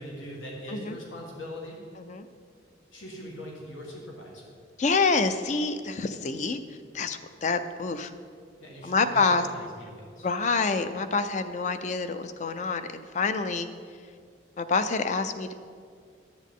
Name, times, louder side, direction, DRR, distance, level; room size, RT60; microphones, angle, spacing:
voice 1, 0.0-1.8 2.9-4.6 8.6-10.3, left 1 dB, 85° left, -2 dB, 1.5 m, -41 dB
voice 2, 4.8-8.1 8.8-9.5 10.2-13.7 14.6-15.5, left 4 dB, 40° left, 10 dB, 0.4 m, -27 dB
10.0 x 8.2 x 3.6 m, 2.2 s
head